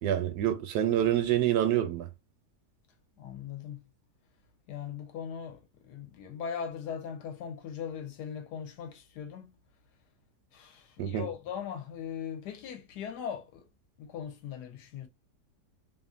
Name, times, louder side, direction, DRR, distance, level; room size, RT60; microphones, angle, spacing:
voice 1, 0.0-2.1 11.0-11.3, right 11 dB, 75° right, 1.1 m, -27 dB
voice 2, 3.2-3.8 4.7-9.5 10.5-13.7 14.0-15.1, left 8 dB, 75° left, 1.2 m, -39 dB
2.8 x 2.4 x 2.4 m
omnidirectional pair, 1.8 m